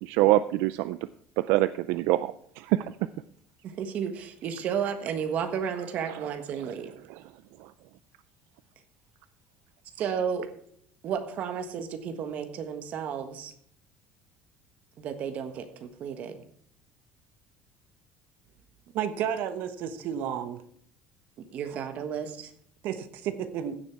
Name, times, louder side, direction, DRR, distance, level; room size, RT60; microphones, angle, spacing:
voice 1, 0.0-1.0 1.4-2.9 6.1-6.2 7.1-7.2, right 16 dB, 75° right, 14 dB, 0.4 m, -25 dB
voice 2, 3.6-6.9 10.0-10.5 11.0-13.5 15.0-16.3 21.5-22.5, right 7 dB, 40° right, 7 dB, 1.4 m, -32 dB
voice 3, 18.9-20.6 21.7-21.8 22.8-23.8, right 9 dB, 55° right, 10 dB, 1.1 m, -32 dB
15.5 x 7.1 x 4.7 m, 0.62 s
cardioid pair, 175°, 4 cm